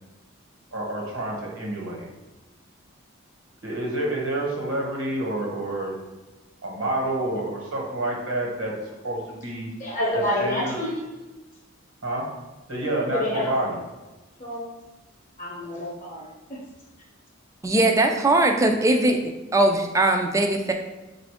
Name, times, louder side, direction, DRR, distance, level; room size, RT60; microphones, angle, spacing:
voice 1, 0.7-2.1 3.6-6.0 6.6-8.7 9.0-9.7 10.1-10.9 12.0-12.3 12.7-13.8, right 1 dB, 75° right, -2 dB, 1.3 m, -28 dB
voice 2, 9.8-11.0 13.1-13.5 14.4-14.7 15.4-16.6, left 1 dB, 35° left, -3 dB, 0.7 m, -28 dB
voice 3, 17.6-19.2 19.5-20.7, right 2 dB, 15° right, 4 dB, 0.3 m, -20 dB
4.2 x 2.5 x 4.8 m, 1.1 s
head